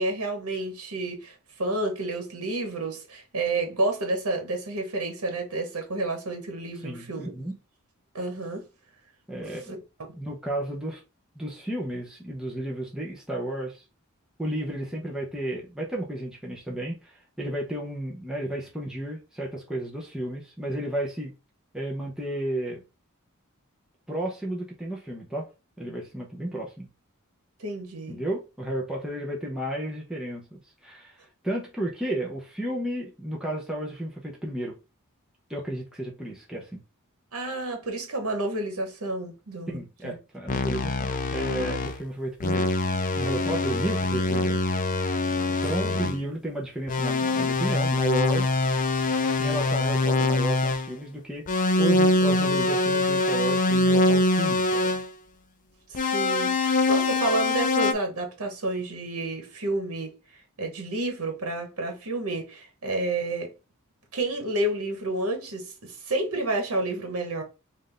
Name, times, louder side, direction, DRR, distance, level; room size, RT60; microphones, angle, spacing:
voice 1, 0.0-1.3 1.6-7.3 8.1-8.6 27.6-28.2 37.3-40.1 45.8-46.1 55.9-60.1 60.6-63.5 64.1-67.4, right 2 dB, 80° right, 1.1 m, -30 dB
voice 2, 6.8-7.6 9.3-9.7 10.2-11.0 11.4-13.8 14.4-21.3 21.7-22.8 24.1-25.5 25.8-26.9 28.1-31.2 31.4-34.8 35.5-36.8 39.7-42.7 43.2-44.6 45.6-48.5 49.4-51.4 51.8-55.0, right 1 dB, 5° right, 0.7 m, -32 dB
sound 1, 40.5-42.0 42.4-46.2 46.9-50.9 51.5-55.1 55.9-57.9, left 2 dB, 40° left, 0.4 m, -24 dB
3.4 x 2.5 x 3.8 m
head